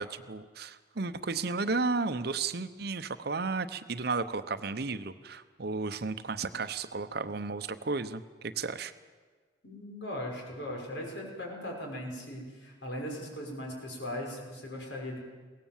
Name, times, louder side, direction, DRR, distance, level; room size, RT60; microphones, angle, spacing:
voice 1, 0.0-8.9, right 4 dB, 55° right, 11 dB, 0.8 m, -33 dB
voice 2, 9.6-15.2, left 1 dB, 70° left, 0 dB, 5.8 m, -39 dB
22.5 x 17.5 x 7.3 m, 1.5 s
head